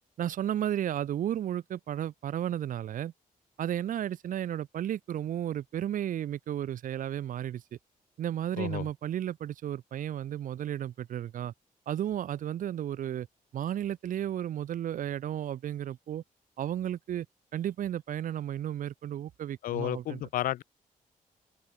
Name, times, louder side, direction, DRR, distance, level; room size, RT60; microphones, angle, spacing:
voice 1, 0.2-3.1 3.6-7.8 8.2-11.5 11.9-13.3 13.5-16.2 16.6-17.3 17.5-20.2, right 11 dB, 65° right, 1.1 m, -33 dB
voice 2, 19.6-20.6, left 13 dB, 75° left, 0.4 m, -32 dB
open air
wide cardioid pair, 155°, 15 cm